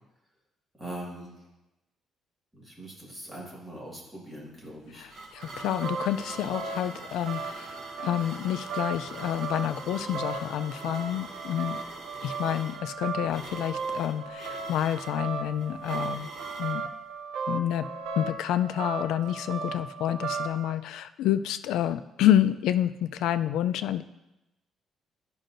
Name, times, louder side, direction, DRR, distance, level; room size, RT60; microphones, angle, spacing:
voice 1, 0.8-1.4 2.5-5.1, right 1 dB, 10° right, -5 dB, 1.8 m, -41 dB
sound 1, 4.6-16.8, right 2 dB, 50° right, 1.3 m, -44 dB
voice 2, 4.9-11.8 12.2-16.3 16.6-16.9 17.5-17.9 18.2-24.0, left 11 dB, 85° left, 12 dB, 0.3 m, -28 dB
sound 2, 5.4-20.7, right 5 dB, 90° right, 0.6 m, -36 dB
11.5 x 5.4 x 2.6 m, 0.97 s
cardioid pair, 175°, 0 cm